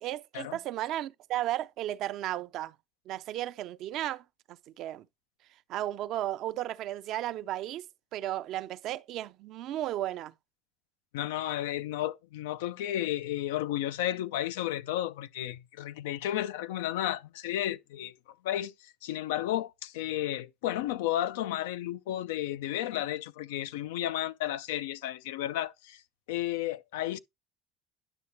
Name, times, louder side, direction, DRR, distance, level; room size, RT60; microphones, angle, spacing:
voice 1, 0.0-2.7 3.1-5.1 5.7-7.9 8.1-10.3, right 13 dB, 60° right, 0.5 m, -34 dB
voice 2, 11.1-18.1 18.4-26.0 26.3-27.2, left 13 dB, 90° left, 0.4 m, -33 dB
9.9 x 5.7 x 3.0 m
supercardioid pair, 90°, 0 cm